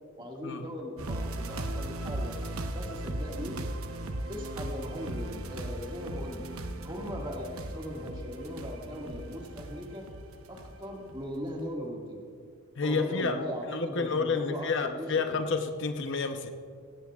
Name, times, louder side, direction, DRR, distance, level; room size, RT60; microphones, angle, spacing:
voice 1, 0.2-2.3 2.7-3.6 4.3-6.5 6.8-10.1 10.5-12.2 12.8-15.4, equal, 20° right, -1 dB, 1.9 m, -39 dB
sound 1, 1.0-11.2 11.7-11.8, right 1 dB, 75° right, 0.9 m, -37 dB
voice 2, 12.8-13.4 13.7-16.5, left 4 dB, 55° left, 6 dB, 0.8 m, -30 dB
18.0 x 17.0 x 2.4 m, 2.2 s
head